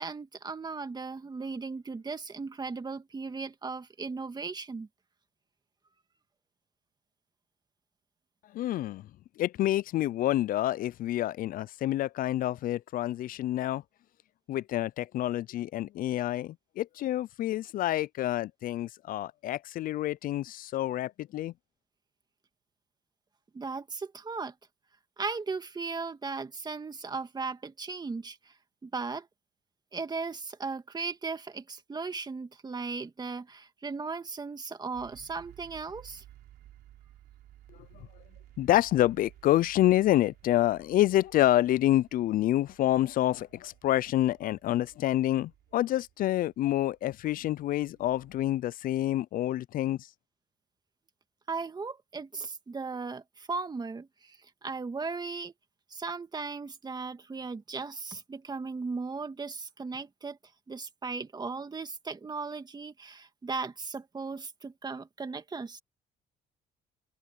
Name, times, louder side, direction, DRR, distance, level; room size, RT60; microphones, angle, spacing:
voice 1, 0.0-4.9 23.5-24.5 25.2-28.5 28.8-29.3 29.9-36.2 51.5-55.5 55.9-60.4 60.7-65.8, right 4 dB, 25° right, 2.2 m, -37 dB
voice 2, 8.5-9.0 9.4-13.8 14.5-21.5 38.6-50.0, left 14 dB, 55° left, 0.4 m, -28 dB
sound 1, 34.9-48.7, right 13 dB, 75° right, 3.5 m, -57 dB
open air
cardioid pair, 110°, 17 cm